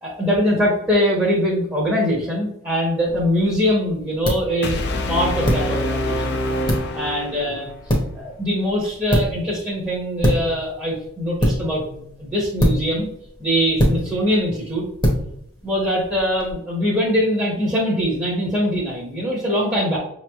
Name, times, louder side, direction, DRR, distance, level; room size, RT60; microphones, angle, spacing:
voice 1, 0.0-4.8 5.1-6.4 6.6-13.1 13.4-14.8 15.6-20.0, equal, 10° right, -5 dB, 0.8 m, -22 dB
sound 1, 3.0-16.5, equal, 20° left, 0.8 m, -26 dB
sound 2, 4.6-7.7, left 1 dB, 50° left, 0.5 m, -25 dB
5.7 x 3.0 x 2.3 m, 0.76 s
head